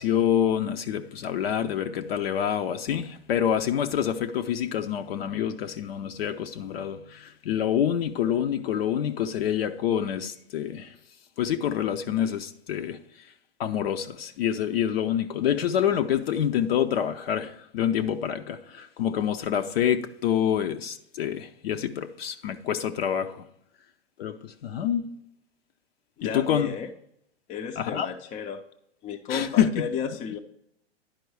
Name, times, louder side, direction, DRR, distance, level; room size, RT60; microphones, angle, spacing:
voice 1, 0.0-10.9 11.4-13.0 13.6-23.4 24.2-25.1 26.2-26.7 27.8-28.1 29.3-29.8, left 9 dB, 65° left, 0.7 m, -27 dB
voice 2, 26.2-26.9 27.5-28.6 29.0-30.4, left 6 dB, 25° left, 0.5 m, -33 dB
10.5 x 4.6 x 4.6 m
hypercardioid pair, 105°, 33 cm